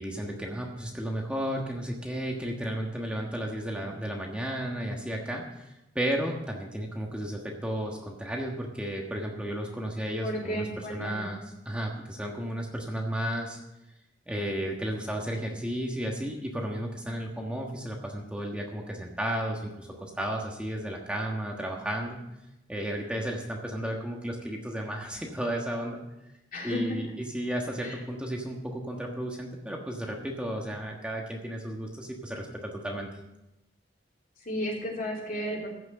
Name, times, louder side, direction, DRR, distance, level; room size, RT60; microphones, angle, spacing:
voice 1, 0.0-13.6 14.3-22.2 22.7-26.0 26.6-33.1, right 1 dB, 5° right, 0 dB, 1.3 m, -33 dB
voice 2, 10.2-11.2 26.5-27.0 27.8-28.0 34.4-35.7, equal, 50° left, -2 dB, 3.4 m, -33 dB
14.5 x 6.2 x 7.5 m, 0.93 s
head